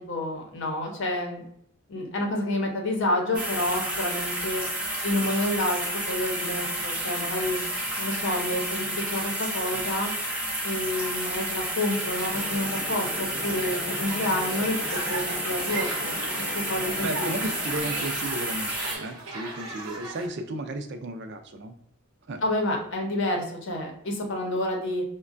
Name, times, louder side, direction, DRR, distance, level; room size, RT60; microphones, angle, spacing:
voice 1, 0.0-1.4 1.9-4.6 5.0-7.6 8.0-10.1 10.6-16.2 16.5-17.3 22.4-25.0, left 1 dB, 60° left, 1 dB, 0.7 m, -29 dB
sound 1, 3.3-19.0, right 1 dB, 5° right, 0.6 m, -31 dB
sound 2, 12.3-17.8, left 3 dB, 35° left, 0.3 m, -40 dB
sound 3, 14.0-20.3, right 2 dB, 90° right, 0.9 m, -38 dB
voice 2, 17.0-21.7 22.3-22.4, right 2 dB, 50° right, 6 dB, 0.4 m, -34 dB
5.2 x 2.2 x 2.4 m, 0.71 s
head